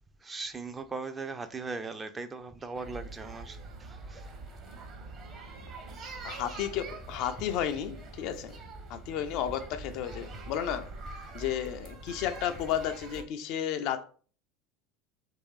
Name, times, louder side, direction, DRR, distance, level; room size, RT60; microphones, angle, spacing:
voice 1, 0.2-4.3, right 4 dB, 20° right, 0.4 m, -39 dB
sound 1, 2.7-13.2, right 2 dB, 40° right, 0.8 m, -44 dB
voice 2, 6.2-8.6 8.9-10.9 11.3-14.0, left 10 dB, 55° left, 0.4 m, -33 dB
3.1 x 2.7 x 3.1 m
figure-of-eight pair, 75°, 0 cm